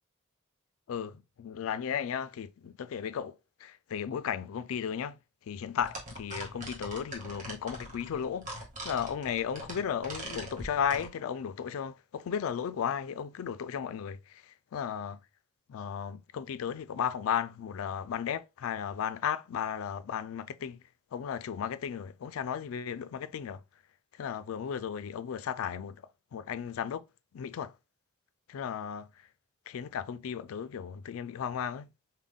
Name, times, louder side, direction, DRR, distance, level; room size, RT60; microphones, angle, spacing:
voice 1, 0.9-8.5 8.8-15.2 15.7-20.8 21.1-23.6 24.1-27.1 27.3-27.7 28.5-29.3 29.7-31.9, left 8 dB, 70° left, 0.3 m, -35 dB
sound 1, 5.8-11.1, right 1 dB, 35° right, 1.3 m, -42 dB
3.6 x 2.1 x 3.5 m
head